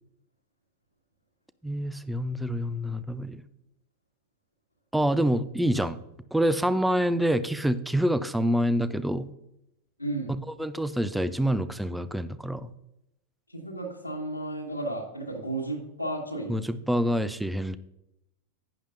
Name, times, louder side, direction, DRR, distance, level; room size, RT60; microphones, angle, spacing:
voice 1, 1.6-3.4 4.9-6.0 6.3-9.3 10.6-12.7 16.5-17.8, equal, 5° right, 15 dB, 0.5 m, -26 dB
voice 2, 10.0-10.3 13.5-16.6, right 2 dB, 90° left, -2 dB, 1.7 m, -33 dB
11.5 x 10.0 x 2.6 m, 0.85 s
figure-of-eight pair, 90°, 0 cm